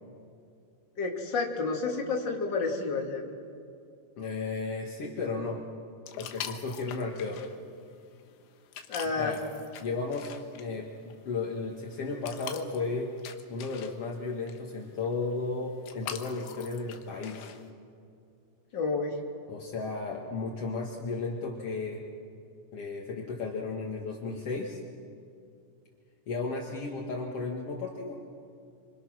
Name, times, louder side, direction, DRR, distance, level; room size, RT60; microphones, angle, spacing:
voice 1, 1.0-3.3 8.9-9.4 18.7-19.1, left 4 dB, 30° left, 0 dB, 2.2 m, -30 dB
voice 2, 4.2-5.6 6.2-7.4 9.1-9.4 9.8-13.1 13.5-17.5 19.5-22.0 22.7-24.8 26.3-28.2, left 3 dB, 55° left, -1 dB, 1.6 m, -34 dB
sound 1, 6.1-17.7, left 9 dB, 75° left, 3.3 m, -45 dB
27.0 x 25.5 x 6.3 m, 2.4 s
omnidirectional pair, 5.3 m